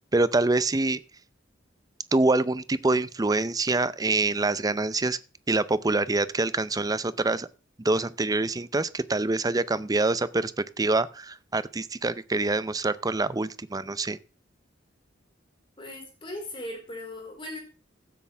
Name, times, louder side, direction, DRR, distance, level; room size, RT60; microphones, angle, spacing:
voice 1, 0.1-1.0 2.1-5.2 5.5-7.5 7.8-10.5 10.8-14.2, right 2 dB, 20° right, 17 dB, 0.5 m, -25 dB
voice 2, 15.8-17.6, left 1 dB, 25° left, 1 dB, 4.4 m, -38 dB
15.0 x 8.5 x 3.4 m, 0.33 s
head